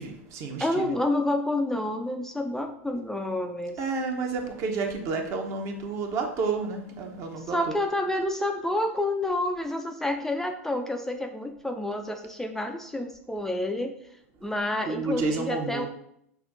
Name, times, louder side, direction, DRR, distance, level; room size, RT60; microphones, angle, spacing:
voice 1, 0.0-0.9 3.8-7.7 14.9-15.9, right 4 dB, 40° right, 4 dB, 0.9 m, -30 dB
voice 2, 0.6-3.8 7.5-14.0 14.4-15.9, left 1 dB, 5° left, 5 dB, 0.4 m, -29 dB
5.7 x 2.6 x 3.5 m, 0.72 s
hypercardioid pair, 95°, 7 cm